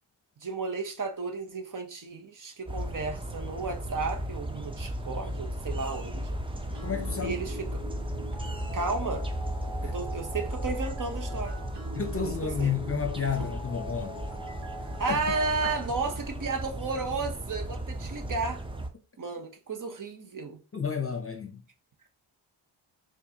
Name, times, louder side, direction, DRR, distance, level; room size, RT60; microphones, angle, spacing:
voice 1, 0.4-6.3 7.2-7.8 8.7-9.2 9.8-11.6 12.2-12.3 12.6-12.7 15.0-18.6 19.2-20.6, right 4 dB, 40° right, 0.8 m, -33 dB
sound 1, 2.7-18.9, right 1 dB, 10° right, 0.5 m, -35 dB
sound 2, 6.7-16.1, equal, 60° right, 1.5 m, -44 dB
voice 2, 6.8-7.4 9.8-9.9 11.9-14.2 14.8-15.2 20.7-21.6, left 6 dB, 30° left, 0.8 m, -31 dB
4.4 x 2.6 x 2.8 m
cardioid pair, 55°, 48 cm